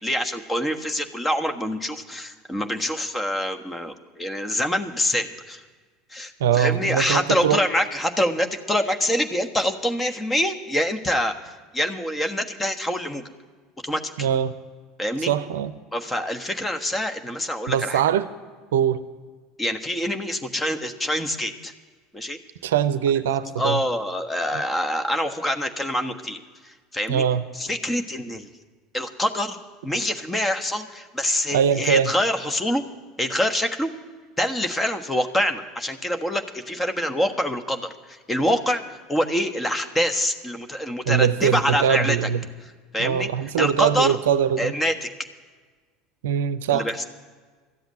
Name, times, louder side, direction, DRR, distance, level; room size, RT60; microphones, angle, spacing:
voice 1, 0.0-5.6 6.1-13.2 13.8-14.3 15.0-15.3 15.9-18.0 19.6-21.7 22.1-22.4 23.6-27.2 27.5-28.5 28.9-32.8 33.2-33.9 34.4-42.2 42.9-43.3 43.6-44.2 44.6-45.1 46.7-47.0, left 1 dB, 15° left, 7 dB, 1.3 m, -25 dB
voice 2, 6.4-7.6 14.2-14.5 15.3-15.7 17.7-18.3 18.7-19.0 22.6-23.8 27.1-27.4 31.5-32.1 41.1-42.4 43.0-44.7 46.2-46.9, right 8 dB, 75° right, 14 dB, 0.6 m, -22 dB
13.5 x 7.9 x 8.9 m, 1.4 s
hypercardioid pair, 70°, 0 cm